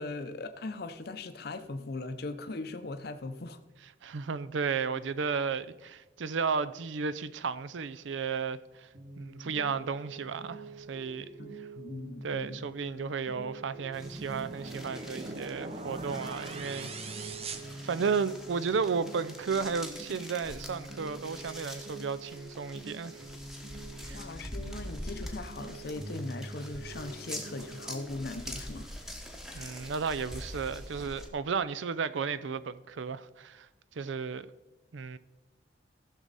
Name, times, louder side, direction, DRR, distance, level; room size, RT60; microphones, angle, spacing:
voice 1, 0.0-3.6 11.4-12.6 24.1-28.9 29.5-29.8, left 2 dB, 55° left, 0.6 m, -39 dB
voice 2, 4.0-8.9 9.2-11.3 11.6-11.7 12.2-17.3 17.8-23.2 24.0-24.2 29.5-33.7 33.9-34.5 34.9-35.2, right 5 dB, 80° right, 0.5 m, -33 dB
sound 1, 8.9-28.3, right 2 dB, 55° right, 2.8 m, -46 dB
sound 2, 13.9-31.3, equal, ahead, 1.0 m, -45 dB
sound 3, 13.9-18.5, right 3 dB, 35° right, 0.7 m, -42 dB
14.5 x 6.3 x 4.0 m
head